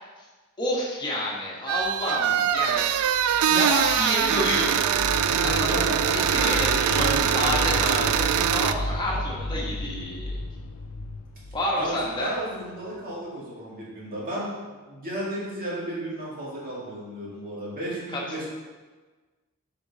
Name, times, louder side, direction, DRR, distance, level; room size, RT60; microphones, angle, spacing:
voice 1, 0.6-3.1 3.5-4.9 5.4-10.4 11.5-12.3 18.1-18.5, left 1 dB, 20° left, -4 dB, 1.4 m, -29 dB
sound 1, 1.7-8.7, right 9 dB, 75° right, 0.3 m, -23 dB
sound 2, 3.1-12.9, left 1 dB, 85° left, 0.6 m, -34 dB
voice 2, 5.2-6.5 6.8-7.6 11.7-18.5, right 1 dB, 40° right, -6 dB, 2.1 m, -33 dB
6.8 x 4.6 x 4.1 m, 1.3 s
head